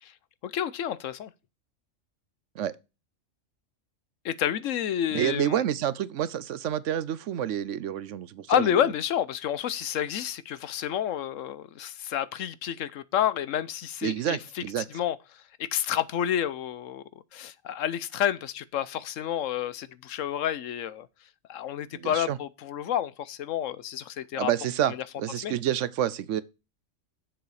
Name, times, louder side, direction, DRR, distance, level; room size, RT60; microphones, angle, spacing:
voice 1, 0.4-1.3 4.2-5.6 8.5-14.6 14.9-17.0 17.3-21.1 21.5-24.5 24.8-25.0 25.4-25.5, left 10 dB, 80° left, 1.1 m, -29 dB
voice 2, 5.1-8.9 14.0-14.8 21.9-22.4 24.3-24.9 25.2-26.4, right 10 dB, 75° right, 1.0 m, -28 dB
7.5 x 6.8 x 4.8 m
omnidirectional pair, 1.3 m